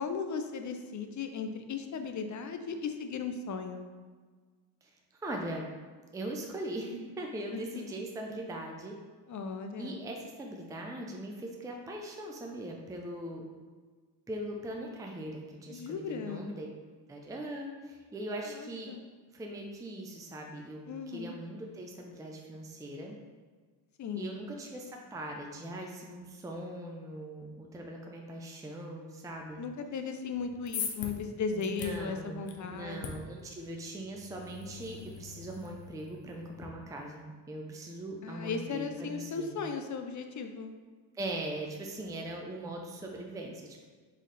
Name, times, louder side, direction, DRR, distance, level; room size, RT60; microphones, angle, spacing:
voice 1, 0.0-3.9 7.5-7.6 9.3-10.0 15.7-16.5 18.5-19.0 20.9-21.4 24.0-24.3 29.6-33.0 38.2-40.7, left 5 dB, 45° left, 6 dB, 0.5 m, -36 dB
voice 2, 4.8-5.7 6.1-9.0 9.8-13.4 14.3-16.7 17.1-18.9 19.3-23.2 24.1-29.6 31.5-39.6 41.1-43.9, right 1 dB, 10° right, 1 dB, 0.5 m, -40 dB
sound 1, 30.3-36.7, left 6 dB, 90° left, 0.7 m, -43 dB
4.0 x 3.2 x 4.0 m, 1.5 s
cardioid pair, 90°, 43 cm